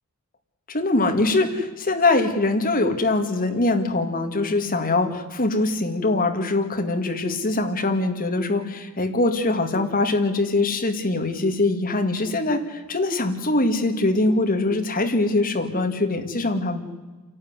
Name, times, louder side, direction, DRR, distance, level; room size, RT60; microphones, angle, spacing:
voice 1, 0.7-16.8, left 2 dB, 40° left, 6 dB, 2.2 m, -23 dB
28.0 x 12.0 x 9.7 m, 1.3 s
head